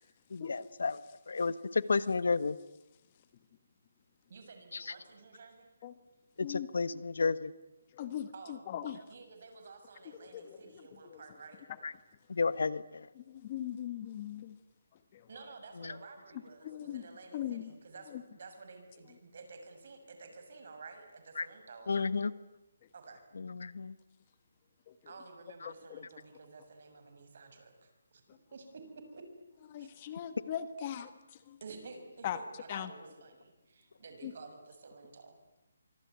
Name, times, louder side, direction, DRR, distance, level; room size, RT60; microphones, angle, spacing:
voice 1, 0.3-2.6 4.7-4.9 6.4-7.5 11.8-11.9 12.3-13.1 15.8-15.9 21.4-21.5 21.9-22.3 23.4-23.9 25.6-25.7, left 4 dB, 70° left, 1.3 m, -32 dB
voice 2, 4.3-5.7 8.3-11.6 15.3-22.3 22.9-23.2 25.0-28.2 28.5-28.8 29.1-29.2 29.8-29.9 31.6-35.4, right 4 dB, 45° right, 6.2 m, -52 dB
voice 3, 7.9-9.0 10.3-10.8 11.1-11.2 13.2-14.6 15.1-15.3 16.6-17.0 17.3-17.7 18.1-18.2 24.9-25.0 25.9-26.0 29.7-31.1 31.5-31.6 32.2-32.4 32.7-32.9 34.2-34.3, left 10 dB, 25° left, 1.2 m, -39 dB
25.0 x 25.0 x 9.4 m
hypercardioid pair, 170°, 0 cm